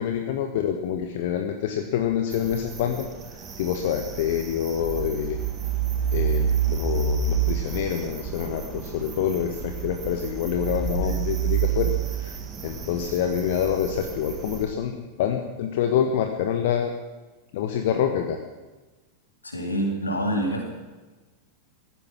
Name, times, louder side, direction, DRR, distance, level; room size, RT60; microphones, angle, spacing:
voice 1, 0.0-5.4 6.1-16.9 17.5-18.4, left 9 dB, 55° left, 5 dB, 1.3 m, -27 dB
sound 1, 2.3-14.6, right 7 dB, 25° right, 2.5 m, -29 dB
voice 2, 19.4-20.7, equal, 80° left, 2 dB, 3.5 m, -27 dB
16.5 x 14.0 x 6.1 m, 1.2 s
figure-of-eight pair, 90°, 0 cm